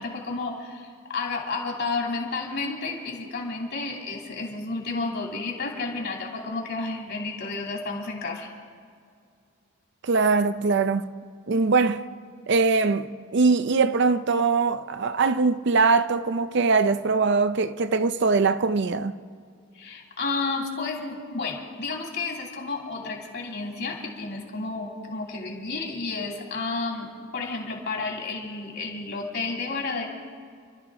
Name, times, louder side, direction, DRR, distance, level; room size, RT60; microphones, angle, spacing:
voice 1, 0.0-8.5 19.7-30.1, left 3 dB, 50° left, 2.9 m, -31 dB
voice 2, 10.0-11.0 11.5-12.0 12.5-13.1 13.3-19.1, right 4 dB, 55° right, 0.5 m, -22 dB
29.5 x 12.5 x 3.7 m
head